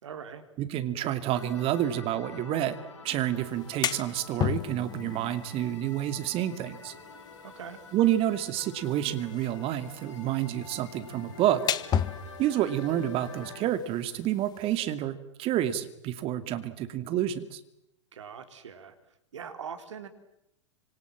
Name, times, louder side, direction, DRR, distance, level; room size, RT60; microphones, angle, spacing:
voice 1, 0.0-0.4 7.4-7.8 18.1-18.9 19.3-20.1, right 7 dB, 70° right, 8 dB, 3.8 m, -41 dB
voice 2, 0.6-2.8 3.0-6.9 7.9-11.7 12.4-17.6, right 12 dB, 35° right, 11 dB, 2.5 m, -29 dB
sound 1, 1.3-13.6, left 4 dB, 70° left, 6.6 m, -48 dB
sound 2, 3.5-14.8, left 9 dB, 25° left, 1.5 m, -36 dB
30.0 x 26.5 x 7.5 m, 0.82 s
figure-of-eight pair, 100°, 16 cm